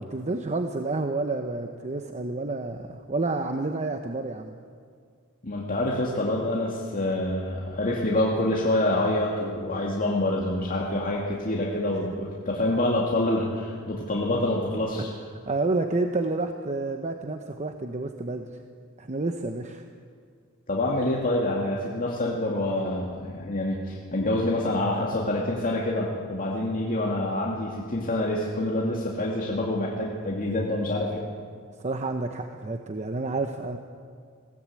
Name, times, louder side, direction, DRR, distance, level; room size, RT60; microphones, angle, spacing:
voice 1, 0.0-4.5 15.0-15.1 15.5-18.6 19.0-19.8 31.8-33.8, right 3 dB, 35° right, 5 dB, 0.9 m, -29 dB
voice 2, 5.4-15.1 20.7-31.2, left 1 dB, 40° left, -3 dB, 2.4 m, -26 dB
21.0 x 17.0 x 8.5 m, 2.1 s
head